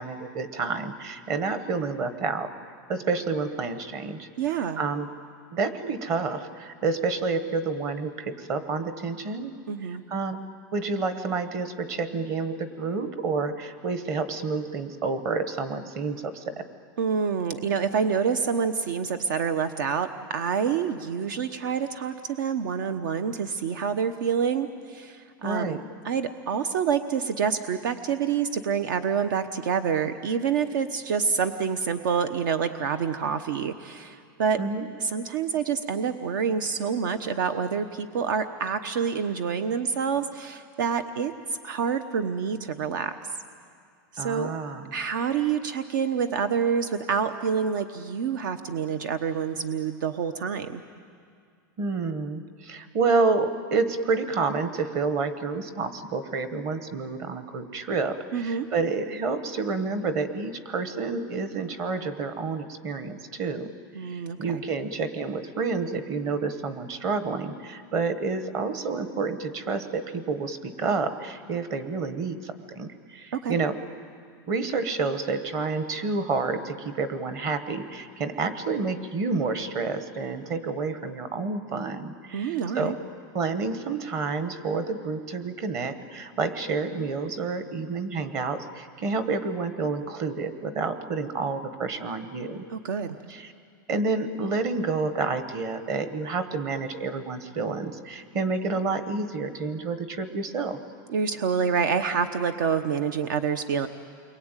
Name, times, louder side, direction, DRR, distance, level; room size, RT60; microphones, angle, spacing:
voice 1, 0.0-2.5 2.9-4.3 4.8-5.1 5.5-9.5 9.8-10.4 10.7-16.7 25.4-25.8 34.6-34.9 44.2-44.9 51.8-63.7 64.0-73.8 74.5-83.0 83.3-92.6 93.3-93.5 93.9-100.8, right 4 dB, 25° right, 10 dB, 1.2 m, -29 dB
voice 2, 4.4-4.8 9.7-10.0 17.0-25.8 26.0-34.6 35.0-41.3 41.6-43.2 44.1-44.5 44.9-50.8 58.3-58.7 63.9-64.6 73.4-73.6 82.3-83.0 92.7-93.2 101.1-103.9, right 6 dB, 65° right, 9 dB, 1.1 m, -27 dB
29.0 x 22.5 x 9.1 m, 2.2 s
supercardioid pair, 175°, 12 cm